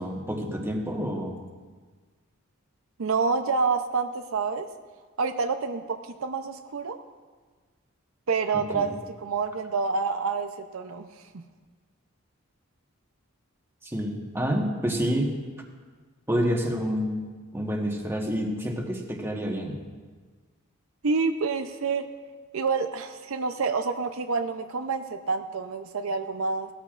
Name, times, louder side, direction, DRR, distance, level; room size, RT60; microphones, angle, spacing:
voice 1, 0.0-1.4 8.7-8.9 13.8-15.3 16.3-17.2 17.5-19.8, equal, 10° right, 1 dB, 1.3 m, -28 dB
voice 2, 3.0-4.7 5.2-7.0 8.3-11.1 11.3-11.4 21.0-22.0 22.5-26.7, right 4 dB, 75° right, 7 dB, 0.6 m, -28 dB
17.5 x 13.5 x 2.5 m, 1.4 s
head